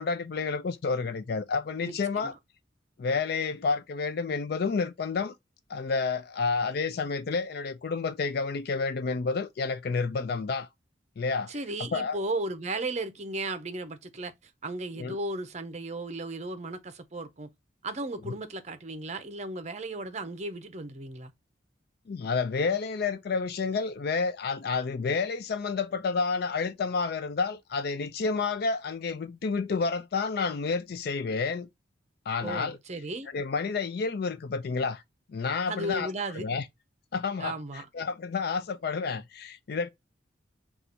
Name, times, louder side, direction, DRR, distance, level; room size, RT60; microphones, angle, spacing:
voice 1, 0.0-2.3 3.0-5.3 5.7-10.7 11.2-11.5 11.9-12.2 15.0-15.2 22.1-31.7 32.3-32.8 33.3-35.0 35.3-36.1 36.3-36.6 37.1-39.9, left 4 dB, 55° left, 0.4 m, -30 dB
voice 2, 1.8-2.3 11.5-14.3 14.6-17.5 17.8-21.3 32.4-33.3 35.7-36.5 37.4-37.9, right 2 dB, 35° right, 0.6 m, -35 dB
3.9 x 2.4 x 4.2 m
head